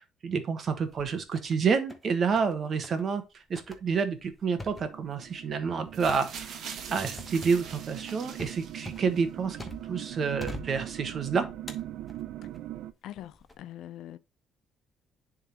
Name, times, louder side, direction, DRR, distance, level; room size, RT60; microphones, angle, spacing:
voice 1, 0.0-6.5 6.9-9.6 9.9-11.5, right 5 dB, 40° right, 1.2 m, -29 dB
sound 1, 0.7-1.6 1.9-2.6 2.8-3.0 3.6-10.0 10.4-11.2 11.7-12.6 13.2-13.6, left 2 dB, 10° left, 1.1 m, -45 dB
sound 2, 4.4-12.9, right 13 dB, 80° right, 0.6 m, -41 dB
sound 3, 5.9-9.2 10.1-10.2, right 6 dB, 55° right, 1.4 m, -43 dB
voice 2, 13.0-14.2, left 13 dB, 75° left, 0.5 m, -43 dB
10.5 x 3.7 x 2.9 m
cardioid pair, 150°, 0 cm